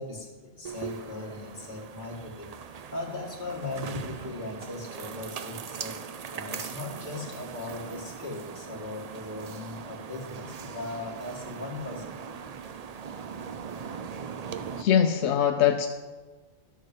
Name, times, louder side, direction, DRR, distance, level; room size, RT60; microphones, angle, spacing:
voice 1, 0.0-6.0 6.3-12.4 12.7-12.9, left 3 dB, 45° left, -1 dB, 1.9 m, -39 dB
sound 1, 0.6-14.8, right 6 dB, 55° right, 0.4 m, -40 dB
voice 2, 14.8-15.9, left 9 dB, 85° left, 6 dB, 0.9 m, -22 dB
12.5 x 6.4 x 4.9 m, 1.3 s
omnidirectional pair, 1.2 m